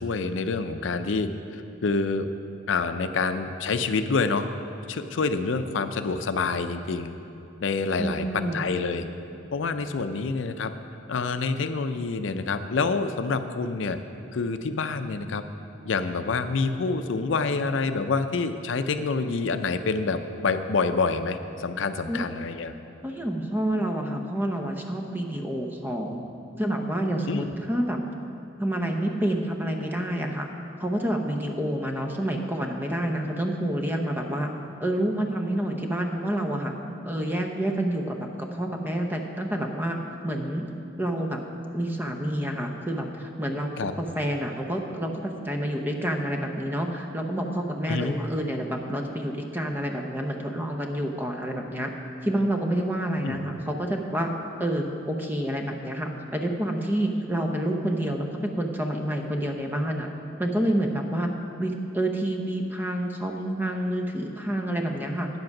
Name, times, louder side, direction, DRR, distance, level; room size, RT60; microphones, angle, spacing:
voice 1, 0.0-2.3 2.7-4.5 4.9-7.1 7.6-9.1 9.5-10.7 11.1-14.0 14.3-15.4 15.9-22.7 27.3-27.5 43.8-43.9 47.9-48.2 53.2-53.4, left 4 dB, 80° left, 9 dB, 0.5 m, -27 dB
voice 2, 8.0-8.7 22.1-22.2 23.0-26.2 26.6-28.0 28.6-30.5 30.8-34.5 34.8-36.7 37.0-40.0 40.2-40.7 41.0-41.4 41.7-43.7 44.0-51.9 52.2-54.3 54.6-60.1 60.4-61.3 61.6-65.3, right 1 dB, 10° right, 3 dB, 0.7 m, -28 dB
9.5 x 7.7 x 5.9 m, 2.9 s
head